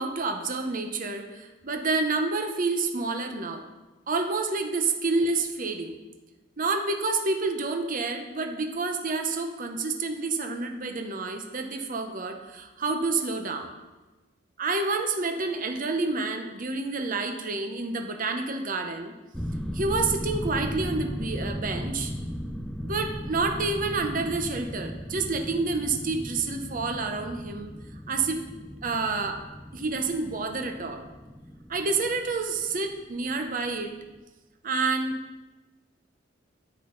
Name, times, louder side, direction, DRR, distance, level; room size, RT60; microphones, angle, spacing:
voice 1, 0.0-3.7 4.1-6.0 6.6-13.7 14.6-19.1 19.7-22.1 22.8-27.7 28.1-28.4 28.8-29.4 29.7-31.0 31.7-33.9 34.6-35.2, right 3 dB, 45° right, 5 dB, 0.8 m, -29 dB
sound 1, 19.3-33.9 34.1-34.2, equal, 5° left, 0.4 m, -36 dB
10.0 x 7.7 x 3.9 m, 1.2 s
head